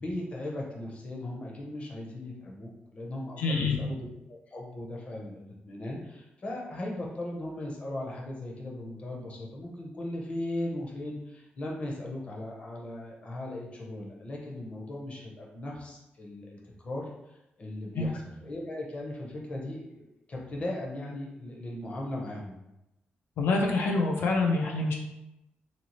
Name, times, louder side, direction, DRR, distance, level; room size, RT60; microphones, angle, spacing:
voice 1, 0.0-20.0 20.3-22.6, left 1 dB, 35° left, -2 dB, 0.6 m, -38 dB
voice 2, 3.4-3.8 17.9-18.1 23.4-25.0, left 3 dB, 85° left, 0 dB, 0.4 m, -26 dB
2.7 x 2.4 x 2.9 m, 0.91 s
wide cardioid pair, 145°, 4 cm